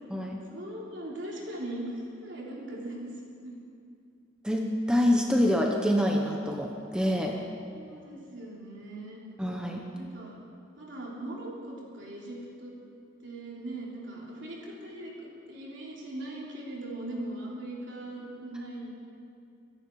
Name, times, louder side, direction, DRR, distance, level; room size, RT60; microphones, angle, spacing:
voice 1, 0.5-3.2 3.4-3.5 7.7-9.2 9.9-10.4 10.8-12.7 13.2-18.9, right 1 dB, 65° right, -4 dB, 3.6 m, -40 dB
voice 2, 4.4-7.4 9.4-9.8, equal, 5° right, 1 dB, 0.9 m, -26 dB
24.0 x 10.5 x 4.8 m, 2.4 s
head